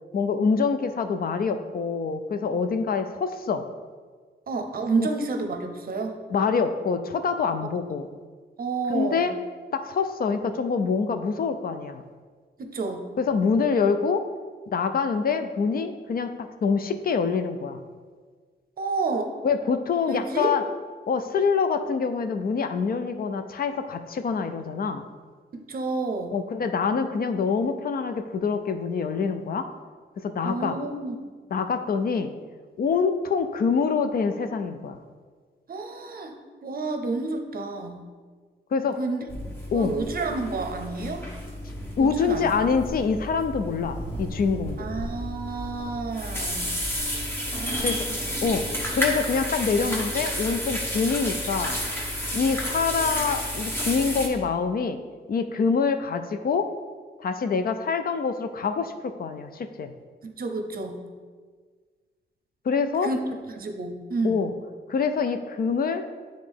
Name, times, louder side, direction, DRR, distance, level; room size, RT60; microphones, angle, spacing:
voice 1, 0.1-3.6 5.0-5.1 6.3-8.1 8.9-9.3 9.7-12.0 13.2-14.2 14.7-17.8 19.4-20.6 21.1-25.1 26.3-29.7 30.2-30.8 31.5-32.3 32.8-35.0 38.7-39.0 39.7-40.0 42.0-44.9 47.8-48.0 48.4-51.7 52.3-55.0 55.3-56.7 57.2-59.9 62.7-63.1 64.2-64.5 64.9-66.0, left 5 dB, 55° left, 8 dB, 0.4 m, -25 dB
voice 2, 4.5-6.2 8.6-9.3 12.6-13.1 18.8-19.3 20.1-20.5 25.5-26.4 30.4-31.3 35.7-36.3 36.6-38.0 39.0-39.2 39.7-41.2 42.0-42.5 44.8-46.7 47.5-48.3 60.2-61.0 63.0-63.2 63.6-64.4, right 3 dB, 55° right, 5 dB, 0.6 m, -30 dB
sound 1, 39.3-54.3, equal, 10° left, 1.0 m, -31 dB
9.5 x 3.8 x 3.5 m, 1.5 s
wide cardioid pair, 160°, 18 cm